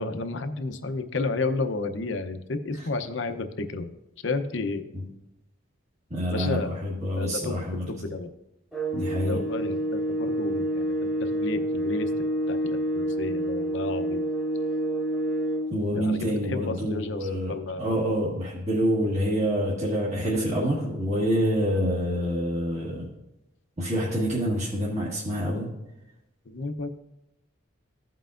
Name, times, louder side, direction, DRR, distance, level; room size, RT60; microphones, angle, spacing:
voice 1, 0.0-3.9 4.2-4.9 6.3-6.8 7.1-8.3 9.2-12.1 12.5-14.2 15.9-17.9 26.4-27.0, left 3 dB, 60° left, 8 dB, 0.7 m, -32 dB
voice 2, 6.1-7.8 8.9-9.4 15.7-17.5 17.8-23.0 23.8-25.7, equal, 35° right, -6 dB, 1.7 m, -27 dB
sound 1, 8.7-15.8, right 1 dB, ahead, 1.3 m, -28 dB
15.5 x 5.6 x 2.5 m, 0.92 s
head